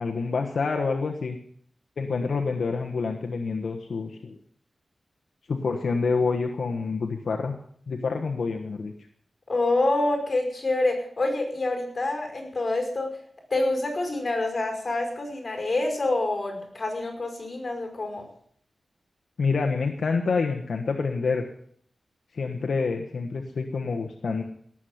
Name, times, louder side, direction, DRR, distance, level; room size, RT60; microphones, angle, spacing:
voice 1, 0.0-1.4 2.0-4.4 5.5-7.5 7.9-8.9 19.4-21.4 22.3-24.4, left 4 dB, 75° left, 3 dB, 1.3 m, -27 dB
voice 2, 9.5-13.1 13.5-18.2, left 2 dB, 40° left, 2 dB, 5.3 m, -27 dB
18.0 x 7.5 x 7.9 m, 0.62 s
wide cardioid pair, 110°, 0 cm